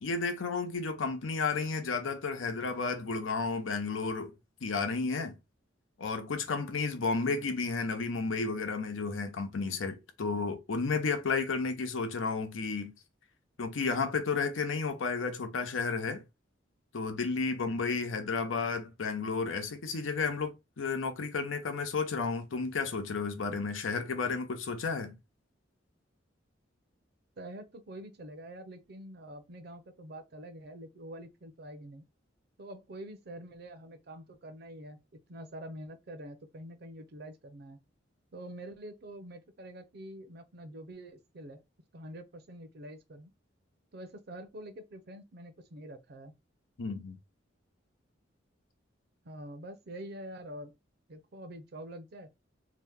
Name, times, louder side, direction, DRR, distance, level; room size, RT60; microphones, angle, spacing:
voice 1, 0.0-4.3 4.6-5.4 6.0-12.9 13.6-16.2 16.9-25.2 46.8-47.2, left 4 dB, 85° left, 0.6 m, -32 dB
voice 2, 27.4-32.0 32.6-35.0 35.3-37.8 38.3-41.6 41.9-43.3 43.9-46.3 49.2-50.7 51.1-52.3, right 1 dB, 55° right, 0.6 m, -46 dB
2.8 x 2.1 x 3.5 m
head